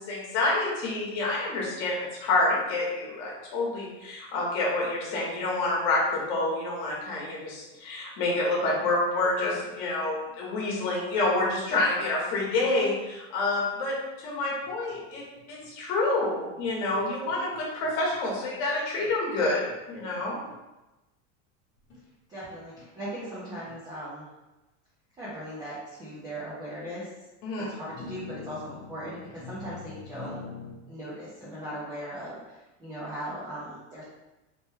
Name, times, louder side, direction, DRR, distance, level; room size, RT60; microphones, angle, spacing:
voice 1, 0.0-15.2 15.5-20.4 27.4-27.7, left 2 dB, 55° left, -3 dB, 1.0 m, -28 dB
sound 1, 14.6-15.7 16.6-16.7 17.0-18.2 19.0-20.6 21.8-22.0 22.8-22.9 23.7-23.8 26.4-26.6 27.8-30.7, left 5 dB, 30° left, 0.9 m, -44 dB
voice 2, 22.3-24.3 25.2-27.1 27.6-30.4 30.9-34.0, equal, 10° right, -10 dB, 0.4 m, -38 dB
2.9 x 2.1 x 3.2 m, 1.0 s
supercardioid pair, 165°, 36 cm